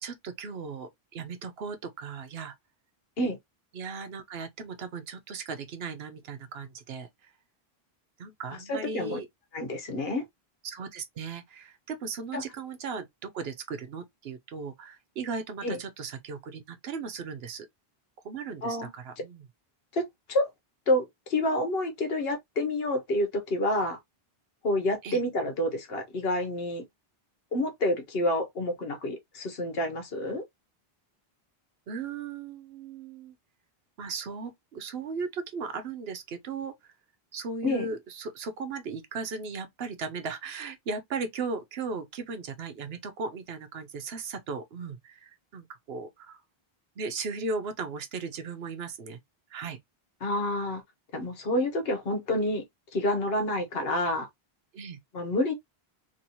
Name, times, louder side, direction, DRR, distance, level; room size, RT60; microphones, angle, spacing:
voice 1, 0.0-2.5 3.7-7.3 8.2-9.3 10.6-17.7 18.2-19.4 25.0-25.2 31.9-33.3 34.0-36.7 37.3-46.4 47.0-49.2 49.5-49.8 54.7-55.0, right 4 dB, 80° right, 1.0 m, -37 dB
voice 2, 8.7-9.2 9.5-10.2 12.3-12.4 15.6-15.8 18.6-18.9 19.9-20.5 20.9-24.0 24.6-26.8 27.5-30.4 37.6-37.9 50.2-50.8 51.1-52.6 52.9-54.3 55.1-55.5, left 1 dB, 70° left, 1.2 m, -28 dB
3.0 x 2.8 x 2.8 m
omnidirectional pair, 1.0 m